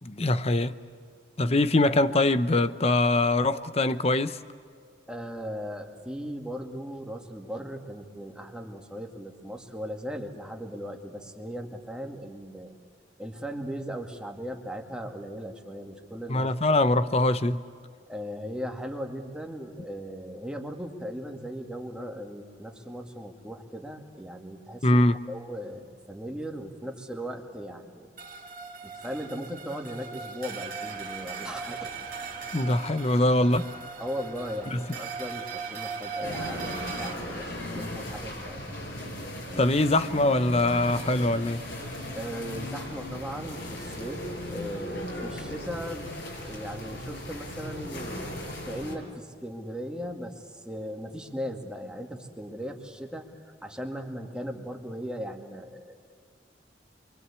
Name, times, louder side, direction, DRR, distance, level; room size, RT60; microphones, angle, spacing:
voice 1, 0.0-0.7 1.4-4.4 16.3-17.6 24.8-25.2 32.5-33.7 34.7-34.8 39.6-41.6, left 2 dB, 35° left, 0.9 m, -23 dB
voice 2, 5.1-12.7 13.2-16.5 18.1-25.0 25.3-28.1 28.8-32.1 34.0-38.7 42.1-44.2 44.5-46.1 46.4-48.4 48.6-56.2, equal, 5° right, 2.3 m, -38 dB
sound 1, 28.2-37.1, right 5 dB, 50° right, 2.4 m, -39 dB
sound 2, 30.8-37.8, equal, 15° left, 3.0 m, -51 dB
sound 3, 36.2-49.0, left 1 dB, 85° left, 7.0 m, -37 dB
28.0 x 24.0 x 8.4 m
head